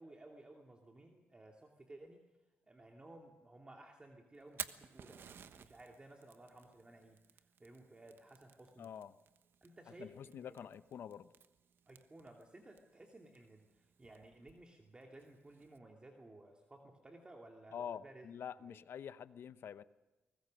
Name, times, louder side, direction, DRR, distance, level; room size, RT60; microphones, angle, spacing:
voice 1, 0.0-2.2 2.7-8.9 9.6-10.7 11.9-18.3 18.6-18.8, right 2 dB, 25° right, 2 dB, 2.6 m, -57 dB
Fire, 4.3-15.8, right 7 dB, 65° right, 1.3 m, -55 dB
voice 2, 8.8-9.1 10.0-11.3 17.7-19.8, left 8 dB, 70° left, 14 dB, 0.9 m, -47 dB
24.0 x 20.0 x 6.4 m, 1.1 s
cardioid pair, 90°, 4 cm